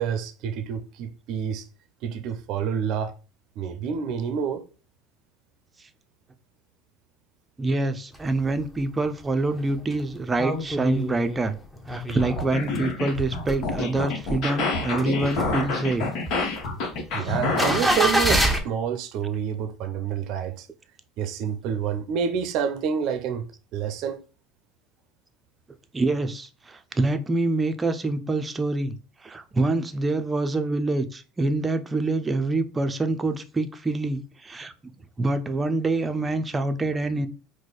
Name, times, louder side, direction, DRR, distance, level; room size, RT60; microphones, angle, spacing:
voice 1, 0.0-1.6 2.0-3.1 3.6-4.6 17.1-20.7 21.2-24.2, right 8 dB, 60° right, 0.6 m, -28 dB
voice 2, 7.6-11.6 11.9-16.1 17.2-17.3 25.9-28.9 29.2-34.7 35.2-37.3, right 2 dB, 20° right, 0.6 m, -26 dB
sound 1, 8.1-8.8 9.2-9.3 9.5-12.9 13.3-14.3 14.7-18.6, equal, 5° left, 0.9 m, -26 dB
sound 2, 12.1-18.1, left 3 dB, 60° left, 1.1 m, -28 dB
4.6 x 2.2 x 4.0 m
hypercardioid pair, 75°, 0 cm